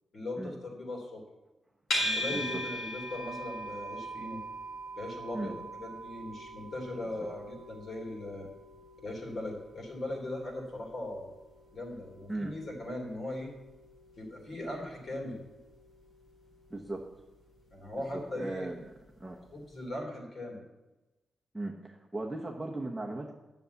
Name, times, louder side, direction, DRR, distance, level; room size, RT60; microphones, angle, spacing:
voice 1, 0.1-1.2 1.9-4.4 5.0-8.5 9.0-11.3 11.7-13.5 14.2-15.4 17.7-18.7 19.5-20.7, left 1 dB, 40° left, 0 dB, 3.3 m, -39 dB
sound 1, 1.9-19.1, equal, 65° left, 4.5 m, -42 dB
voice 2, 2.3-2.6 5.3-5.5 12.3-12.5 16.7-17.0 18.3-18.8 19.2-19.4 21.5-23.4, right 2 dB, 5° right, -2 dB, 1.1 m, -37 dB
10.5 x 7.1 x 8.1 m, 1.1 s
wide cardioid pair, 165°, 0 cm